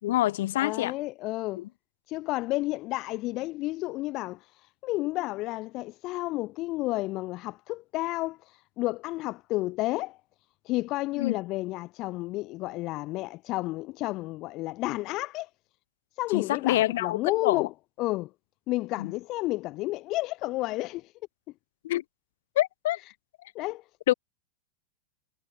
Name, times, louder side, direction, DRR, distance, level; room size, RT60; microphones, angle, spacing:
voice 1, 0.0-0.9 1.6-1.7 11.2-11.4 16.3-17.7 19.0-19.1 21.8-22.0 22.6-23.0 24.1-24.2, left 15 dB, 55° left, 4.3 m, -26 dB
voice 2, 0.6-1.6 2.1-4.5 4.8-10.2 10.6-15.5 16.2-17.7 18.0-18.3 18.7-21.1 23.5-23.8, left 19 dB, 40° left, 3.1 m, -31 dB
figure-of-eight pair, 90°, 0 cm